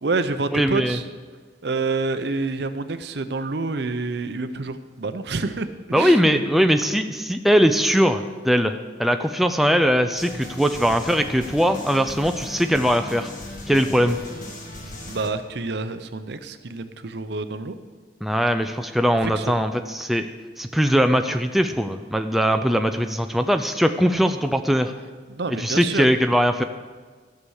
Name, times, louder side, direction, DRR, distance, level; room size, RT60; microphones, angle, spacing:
voice 1, 0.0-1.0 1.6-6.4 15.0-17.8 19.2-19.5 25.3-26.1, right 3 dB, 60° right, 10 dB, 0.7 m, -28 dB
voice 2, 0.5-1.0 5.9-13.3 13.7-14.2 18.2-20.3 20.6-24.9 25.5-26.6, equal, ahead, 6 dB, 0.4 m, -20 dB
sound 1, 10.2-15.3, left 1 dB, 45° left, 1.8 m, -37 dB
13.0 x 6.8 x 6.4 m, 1.5 s
head